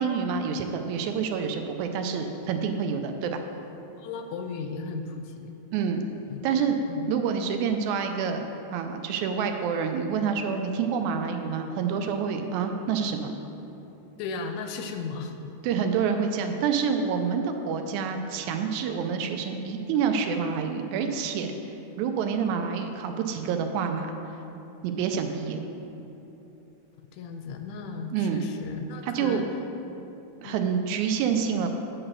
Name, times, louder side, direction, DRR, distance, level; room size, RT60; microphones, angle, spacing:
voice 1, 0.0-3.4 5.7-6.0 6.4-6.8 7.1-13.3 15.6-21.5 22.0-24.1 24.8-25.6 28.1-28.4 29.0-29.4 30.4-31.7, right 6 dB, 85° right, 5 dB, 2.0 m, -27 dB
voice 2, 4.0-5.6 6.3-6.4 6.9-7.1 14.2-15.5 27.0-29.4 30.4-31.0, left 4 dB, 80° left, 5 dB, 1.7 m, -36 dB
8.8 x 4.0 x 6.5 m, 3.0 s
omnidirectional pair, 3.4 m